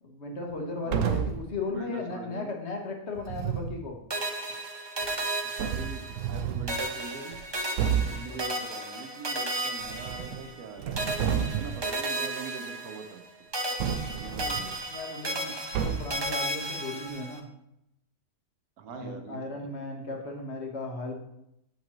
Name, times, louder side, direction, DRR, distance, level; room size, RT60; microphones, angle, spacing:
voice 1, 0.0-4.0 8.1-8.4 14.3-14.6 14.9-17.4 18.9-21.1, left 3 dB, 50° left, 1 dB, 1.4 m, -36 dB
voice 2, 0.8-1.2 1.7-2.5 5.5-7.4 8.0-13.2 14.2-14.8 18.8-19.7, right 6 dB, 90° right, 6 dB, 1.3 m, -43 dB
sound 1, 0.9-1.5 3.2-3.8 5.0-5.1 5.6-6.8 7.3-7.4 7.8-8.2 9.8-10.5 10.8-11.9 13.8-14.8 15.7-16.3, right 8 dB, 70° right, 0.9 m, -30 dB
sound 2, 4.1-6.4 6.7-10.7 11.0-13.3 13.5-17.4, right 1 dB, 35° right, 0.4 m, -34 dB
7.5 x 5.8 x 3.0 m, 0.80 s
omnidirectional pair, 1.5 m